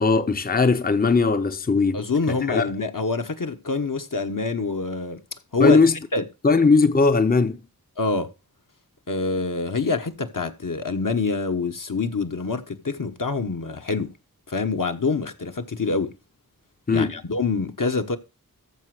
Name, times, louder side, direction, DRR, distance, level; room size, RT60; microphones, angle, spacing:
voice 1, 0.0-2.7 5.6-6.0 6.4-7.6 16.9-17.2, left 4 dB, 25° left, 0.6 m, -19 dB
voice 2, 1.9-5.2 5.5-5.8 6.1-6.2 8.0-8.3 9.1-14.1 14.5-16.1 16.9-18.2, left 4 dB, 60° left, 1.2 m, -26 dB
14.0 x 5.2 x 4.9 m
wide cardioid pair, 55°, 36 cm